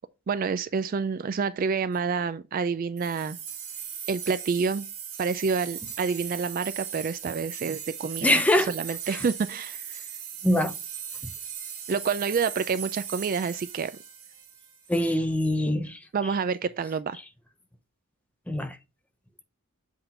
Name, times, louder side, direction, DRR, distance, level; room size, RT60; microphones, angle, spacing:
voice 1, 0.3-3.4 4.1-4.9 5.2-8.4 8.7-10.0 11.9-13.9 16.1-17.2, right 5 dB, 40° right, 0.3 m, -28 dB
sound 1, 3.0-15.0, right 8 dB, 80° right, 2.4 m, -39 dB
voice 2, 8.2-8.7 9.1-9.2 10.4-10.7 14.9-16.0 18.5-18.8, left 1 dB, 5° left, 0.6 m, -23 dB
7.9 x 3.7 x 4.2 m
head